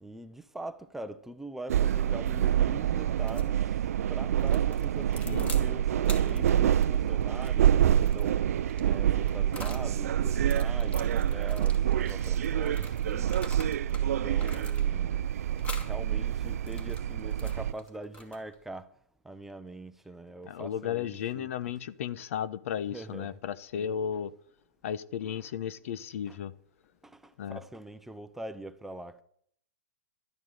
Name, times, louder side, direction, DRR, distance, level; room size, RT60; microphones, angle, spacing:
voice 1, 0.0-3.7 4.1-8.4 8.8-13.7 14.0-18.9 19.2-21.7 22.2-22.3 22.9-23.4 25.2-25.5 26.3-26.4 27.0-29.2, right 2 dB, 5° right, 0.7 m, -43 dB
sound 1, 1.7-17.7, right 10 dB, 75° right, 0.4 m, -27 dB
sound 2, 3.2-3.5 4.4-5.7 6.0-9.9 10.3-14.0 14.4-15.1 15.6-15.9 16.5-18.6, left 2 dB, 15° left, 2.4 m, -46 dB
voice 2, 5.2-5.6 20.4-24.3 24.8-26.5 27.4-27.6, left 9 dB, 65° left, 0.9 m, -34 dB
12.0 x 11.0 x 6.5 m
hypercardioid pair, 140°, 8 cm